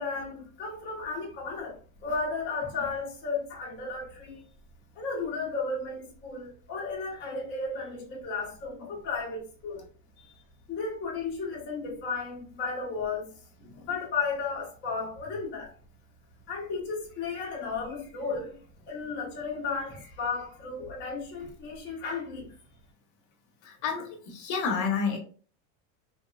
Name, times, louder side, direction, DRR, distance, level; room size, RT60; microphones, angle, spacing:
voice 1, 0.0-4.4 5.0-9.8 10.2-10.3 10.7-13.3 13.9-15.7 16.5-18.6 18.9-22.5, left 4 dB, 25° left, 0.7 m, -34 dB
voice 2, 23.6-25.2, left 5 dB, 60° left, 0.8 m, -30 dB
2.9 x 2.0 x 2.2 m
supercardioid pair, 150°, 41 cm